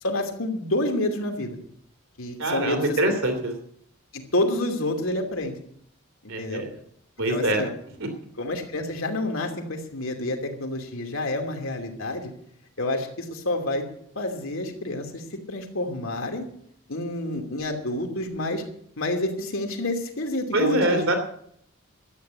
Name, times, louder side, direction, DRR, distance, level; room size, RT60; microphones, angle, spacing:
voice 1, 0.0-1.6 2.2-3.2 4.1-5.5 6.4-6.6 7.3-7.7 8.4-12.3 12.8-13.8 14.2-16.5 16.9-18.6 19.0-21.1, left 1 dB, 75° left, 3 dB, 2.8 m, -28 dB
voice 2, 2.4-3.6 6.3-6.7 7.2-7.7 8.0-8.1 20.5-21.2, right 1 dB, 70° right, 5 dB, 2.9 m, -24 dB
13.0 x 9.2 x 8.2 m, 0.68 s
head